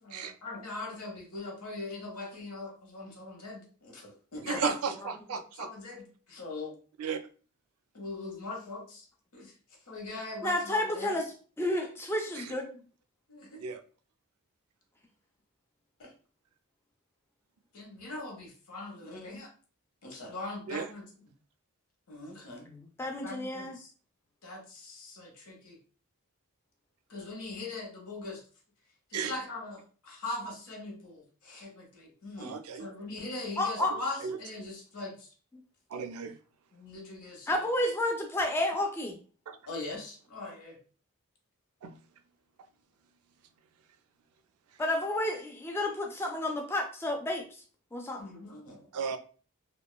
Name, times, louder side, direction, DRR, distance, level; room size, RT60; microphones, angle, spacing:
voice 1, 0.0-4.8 5.3-6.7 7.9-9.1 9.3-9.5 9.9-11.2 13.3-13.7 16.0-16.1 17.7-19.5 20.0-21.0 22.1-22.7 23.0-23.9 24.4-25.8 27.1-28.4 29.1-35.3 36.7-37.7 39.6-40.8 48.2-48.9, left 2 dB, 75° left, 0 dB, 0.9 m, -41 dB
voice 2, 4.4-5.7 7.0-7.2 12.4-12.5 13.6-13.8 20.7-20.9 29.1-29.3 32.4-32.9 33.8-33.9 34.2-34.4 35.9-36.4 39.5-39.6 41.8-41.9 48.9-49.2, right 6 dB, 75° right, 9 dB, 0.3 m, -34 dB
voice 3, 10.4-12.7 22.7-23.8 33.6-33.9 37.5-39.2 44.8-47.4 47.9-48.3, left 1 dB, 10° left, 2 dB, 0.3 m, -31 dB
2.8 x 2.2 x 2.2 m, 0.38 s
head